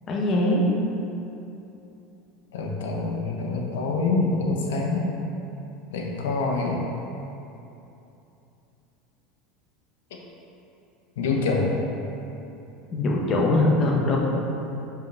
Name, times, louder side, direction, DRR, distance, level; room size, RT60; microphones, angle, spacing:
voice 1, 0.1-0.6 12.9-14.2, left 2 dB, 35° left, -2 dB, 1.5 m, -22 dB
voice 2, 2.5-5.1 5.9-6.8 11.2-11.7, left 3 dB, 90° left, 0 dB, 1.1 m, -25 dB
5.5 x 5.1 x 6.1 m, 2.9 s
supercardioid pair, 115°, 0 cm